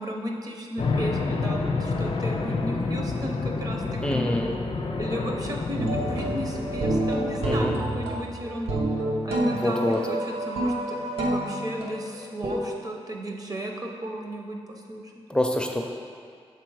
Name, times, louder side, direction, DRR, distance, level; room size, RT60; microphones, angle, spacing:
voice 1, 0.0-4.6 5.0-15.1, equal, 35° right, 1 dB, 0.7 m, -34 dB
sound 1, 0.8-7.5, left 3 dB, 60° left, 0.5 m, -29 dB
voice 2, 4.0-4.6 7.4-7.7 9.6-10.0 15.3-15.8, left 1 dB, 10° left, 1 dB, 0.4 m, -25 dB
sound 2, 5.8-12.6, right 1 dB, 75° right, 0.8 m, -28 dB
6.0 x 4.0 x 4.7 m, 2.1 s
wide cardioid pair, 155°, 11 cm